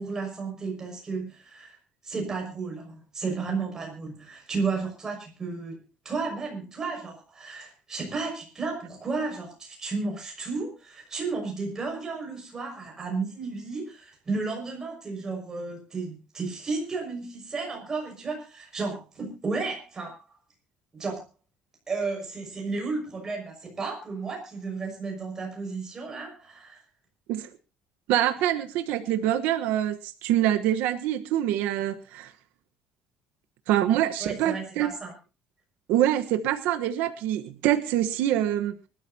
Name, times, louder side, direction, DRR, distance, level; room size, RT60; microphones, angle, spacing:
voice 1, 0.0-1.8 2.0-20.1 20.9-21.2 21.9-26.8 34.2-35.1, right 4 dB, 20° right, 1 dB, 6.0 m, -33 dB
voice 2, 28.1-32.3 33.7-34.9 35.9-38.8, right 12 dB, 90° right, 8 dB, 1.2 m, -25 dB
24.5 x 13.0 x 2.8 m, 0.31 s
cardioid pair, 180°, 3 cm